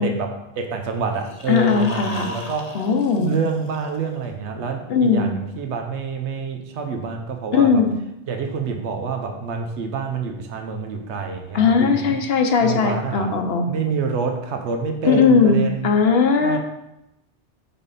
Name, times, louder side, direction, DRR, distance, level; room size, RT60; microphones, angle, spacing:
voice 1, 0.0-2.8 3.2-7.8 8.3-12.2 12.6-13.4 13.7-15.9 16.4-16.6, right 5 dB, 80° right, 4 dB, 1.1 m, -27 dB
sound 1, 1.1-4.2, left 2 dB, 40° left, 0.9 m, -36 dB
voice 2, 1.5-2.3 2.7-3.3 4.9-5.3 7.5-8.0 11.5-13.6 15.0-16.6, left 5 dB, 65° left, 4 dB, 1.0 m, -18 dB
5.7 x 5.3 x 4.1 m, 0.88 s
omnidirectional pair, 1.1 m